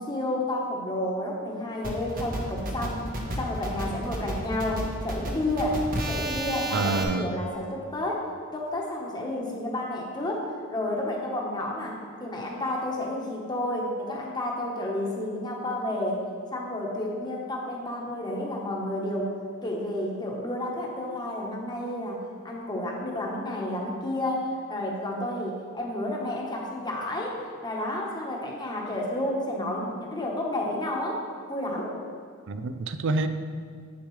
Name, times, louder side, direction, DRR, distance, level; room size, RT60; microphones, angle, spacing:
voice 1, 0.0-3.0 3.4-5.8 6.1-8.2 8.5-11.9 12.2-16.2 16.5-19.4 19.6-27.4 27.6-31.2 31.5-32.0, left 1 dB, 20° left, -2 dB, 1.1 m, -31 dB
sound 1, 1.8-7.0, right 1 dB, 40° right, 1.0 m, -31 dB
voice 2, 6.7-7.4 32.5-33.3, right 3 dB, 60° right, 10 dB, 0.4 m, -27 dB
7.9 x 6.8 x 3.2 m, 2.1 s
head